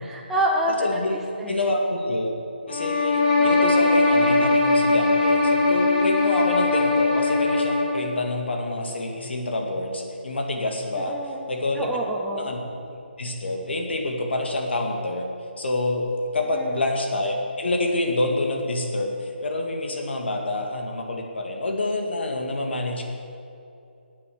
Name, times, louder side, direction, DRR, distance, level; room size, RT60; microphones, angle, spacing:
voice 1, 0.1-0.7 1.4-1.7 3.2-3.6 11.0-11.4 11.8-12.5 16.5-16.8, right 1 dB, 5° right, -2 dB, 0.4 m, -28 dB
voice 2, 0.7-1.2 1.5-2.3 2.7-11.1 11.5-11.9 12.3-12.6 13.2-15.3 15.6-23.0, left 2 dB, 70° left, 2 dB, 2.1 m, -27 dB
sound 1, 2.7-8.1, left 3 dB, 35° left, 3.1 m, -20 dB
12.0 x 8.6 x 6.2 m, 2.6 s
hypercardioid pair, 170°, 6 cm